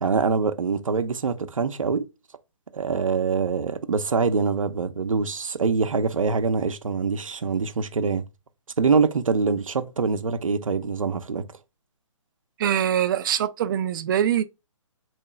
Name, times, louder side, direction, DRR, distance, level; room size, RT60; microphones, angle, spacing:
voice 1, 0.0-2.1 2.7-8.2 8.8-11.4, right 5 dB, 85° right, 0.8 m, -24 dB
voice 2, 12.6-14.4, right 10 dB, 40° right, 0.5 m, -23 dB
3.7 x 3.2 x 4.3 m
hypercardioid pair, 145°, 17 cm